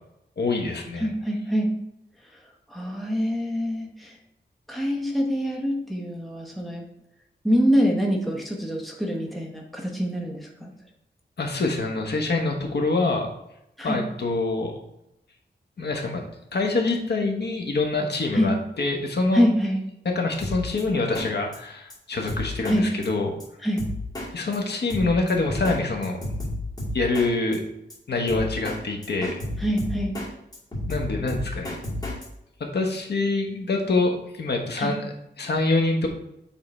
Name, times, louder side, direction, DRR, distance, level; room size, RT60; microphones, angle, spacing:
voice 1, 0.4-1.1 11.4-13.3 13.8-14.7 15.8-16.2 16.5-19.4 20.0-23.3 24.3-26.2 26.9-27.6 28.1-29.4 30.9-31.7 32.6-35.1 35.4-36.1, left 3 dB, 65° left, 2 dB, 1.1 m, -25 dB
voice 2, 1.0-1.7 2.3-2.4 2.7-4.2 4.7-6.8 7.4-10.7 13.8-14.0 18.3-18.5 19.3-19.8 22.7-22.9 23.6-23.8 29.6-30.1 34.8-34.9, equal, ahead, 0 dB, 1.0 m, -25 dB
Drum kit, 20.4-20.8 21.2-21.3 21.5-21.6 21.9-22.0 22.3-22.8 23.0-23.1 23.4-23.5 23.8-24.3 24.5-24.6 24.9-25.8 26.0-27.3 27.5-27.6 27.9-28.0 28.3-28.8 29.0-30.3 30.5-32.3, left 1 dB, 20° left, 2.5 m, -31 dB
7.1 x 3.7 x 4.2 m, 0.83 s
wide cardioid pair, 125°, 18 cm